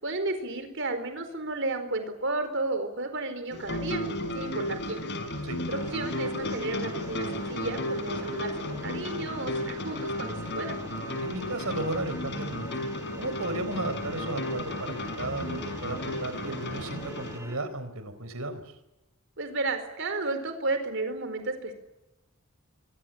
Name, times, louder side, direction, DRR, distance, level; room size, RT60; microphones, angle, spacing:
voice 1, 0.0-4.0 4.3-5.0 5.7-10.8 19.4-21.7, right 2 dB, 60° right, 8 dB, 4.4 m, -32 dB
sound 1, 3.5-17.4, left 1 dB, 55° left, 4.9 m, -34 dB
sound 2, 5.7-17.6, right 1 dB, 15° right, 4.2 m, -47 dB
voice 2, 11.2-12.9 13.2-18.6, right 2 dB, 80° right, 11 dB, 4.3 m, -34 dB
23.5 x 23.0 x 9.1 m, 0.96 s
head